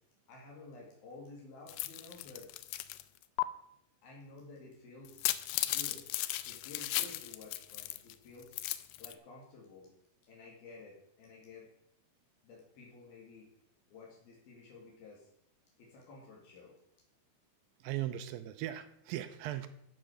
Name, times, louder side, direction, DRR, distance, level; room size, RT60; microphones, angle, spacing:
voice 1, 0.3-2.5 4.0-5.2 5.6-6.0 6.5-8.5 9.0-9.9 10.3-11.7 12.4-13.5 13.9-15.3 15.8-16.8, left 3 dB, 70° left, -3 dB, 4.3 m, -52 dB
sound 1, 1.7-3.0 3.4-3.5 5.1-8.1 8.4-9.1, left 16 dB, 90° left, 2.7 m, -36 dB
voice 2, 17.8-19.7, right 13 dB, 80° right, 11 dB, 2.2 m, -38 dB
14.5 x 5.7 x 6.3 m, 0.73 s
omnidirectional pair, 4.5 m